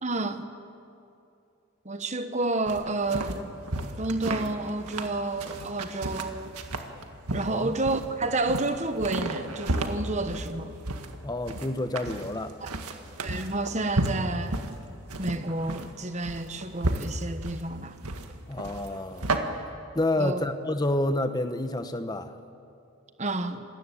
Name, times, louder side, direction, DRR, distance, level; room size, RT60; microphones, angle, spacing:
voice 1, 0.0-0.5 1.8-3.5 4.0-6.6 7.3-10.7 12.6-12.7 13.2-14.6 15.2-18.0 20.2-20.4 23.2-23.6, right 2 dB, 30° right, 1.2 m, -30 dB
sound 1, 2.7-19.4, right 2 dB, 85° right, 1.8 m, -33 dB
voice 2, 11.2-12.6 18.5-19.3 19.9-22.3, left 1 dB, 15° left, 1.0 m, -29 dB
26.5 x 20.0 x 8.5 m
head